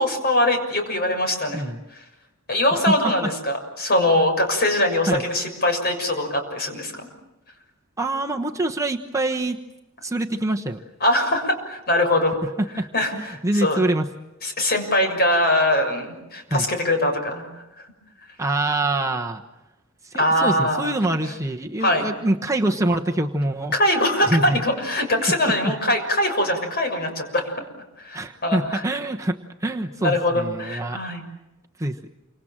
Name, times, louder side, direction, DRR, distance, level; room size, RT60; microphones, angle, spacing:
voice 1, 0.0-1.6 2.5-7.1 11.0-12.4 12.9-13.8 14.4-17.5 20.2-20.9 21.8-22.1 23.7-27.5 28.0-28.8 30.0-31.2, left 1 dB, 50° left, 5 dB, 6.6 m, -22 dB
voice 2, 2.7-3.3 5.1-5.2 8.0-9.6 10.0-10.8 12.6-12.9 13.1-14.1 16.5-16.7 18.4-19.4 20.0-23.7 24.2-24.6 25.6-25.7 28.1-31.0 31.8-32.1, right 1 dB, 15° right, 2 dB, 1.2 m, -25 dB
28.5 x 26.0 x 7.5 m, 0.97 s
head